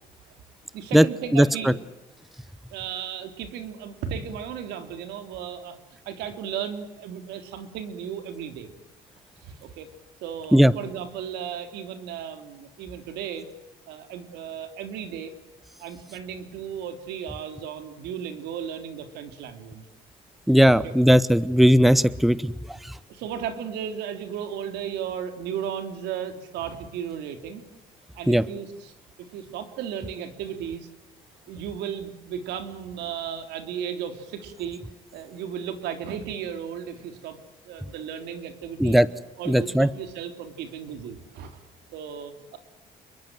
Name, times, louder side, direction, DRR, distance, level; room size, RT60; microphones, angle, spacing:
voice 1, 0.7-1.8 2.7-5.8 6.1-8.7 9.4-9.9 10.2-13.5 13.9-15.3 15.8-19.8 20.8-20.9 23.1-27.6 28.1-28.9 29.2-30.9 31.5-34.8 35.1-37.4 37.7-39.0 39.4-41.6 41.9-42.6, right 8 dB, 85° right, 7 dB, 3.6 m, -35 dB
voice 2, 20.5-22.5 28.3-28.4 38.8-39.1 39.5-39.9, equal, ahead, 17 dB, 0.8 m, -17 dB
28.0 x 23.0 x 7.8 m, 0.96 s
cardioid pair, 110°, 17 cm